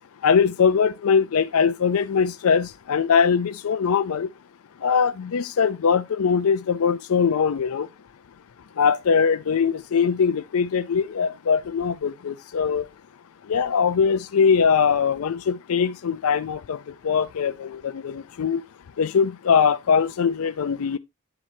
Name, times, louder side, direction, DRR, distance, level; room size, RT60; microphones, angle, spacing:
voice 1, 0.2-4.3 4.8-7.9 8.8-12.9 13.5-16.8 17.0-18.6 19.0-21.0, left 6 dB, 70° left, 0.4 m, -21 dB
9.8 x 7.4 x 2.7 m
head